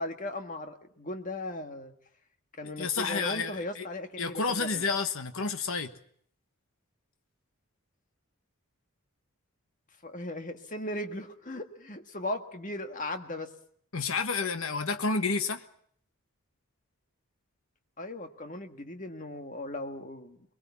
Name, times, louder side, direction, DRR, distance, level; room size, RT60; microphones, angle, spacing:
voice 1, 0.0-1.9 2.6-4.8 10.0-13.5 18.0-20.4, left 1 dB, 35° left, 6 dB, 1.7 m, -37 dB
voice 2, 2.8-3.8 4.2-5.9 13.9-15.6, left 4 dB, 70° left, 8 dB, 1.3 m, -30 dB
22.0 x 22.0 x 7.2 m, 0.63 s
head